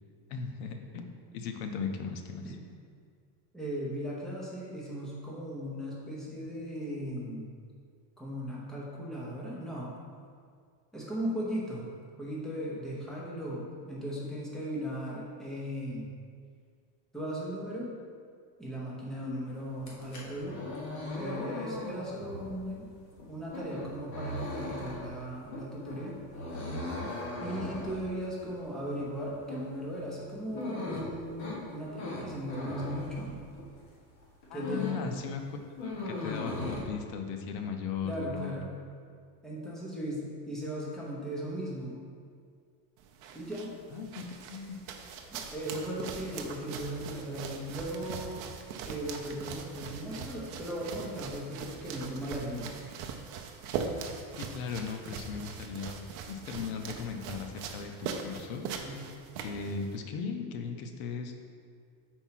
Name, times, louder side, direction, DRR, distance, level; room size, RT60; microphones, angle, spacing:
voice 1, 0.3-1.0 1.3-2.5 34.5-38.6 43.9-44.8 54.4-58.6 59.4-61.3, left 6 dB, 60° left, 5 dB, 0.8 m, -37 dB
voice 2, 3.5-7.5 8.2-9.9 10.9-11.9 12.2-16.1 17.1-17.9 18.6-20.6 21.2-22.9 23.3-26.2 27.4-33.4 34.5-34.9 38.0-38.7 39.4-41.9 43.3-43.7 45.3-48.4 48.8-52.8 58.8-59.0, equal, ahead, -6 dB, 0.8 m, -37 dB
sound 1, 19.7-33.8 34.2-35.1 35.4-36.8, left 2 dB, 40° left, 1.3 m, -39 dB
sound 2, 43.0-60.0, right 6 dB, 45° right, 0.5 m, -41 dB
4.5 x 4.5 x 5.8 m, 2.1 s
cardioid pair, 165°, 45 cm